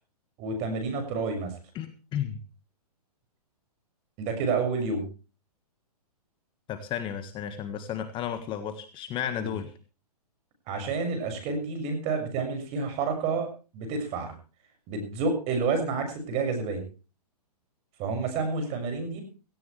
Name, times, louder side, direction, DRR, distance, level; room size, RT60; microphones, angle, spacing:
voice 1, 0.4-1.5 4.2-5.1 9.4-9.5 10.7-14.3 14.9-16.8 18.0-19.2, right 4 dB, 30° right, 6 dB, 6.4 m, -29 dB
voice 2, 1.7-2.4 6.7-9.7, left 9 dB, 25° left, 9 dB, 1.6 m, -33 dB
17.5 x 16.5 x 3.3 m, 0.34 s
hypercardioid pair, 125°, 20 cm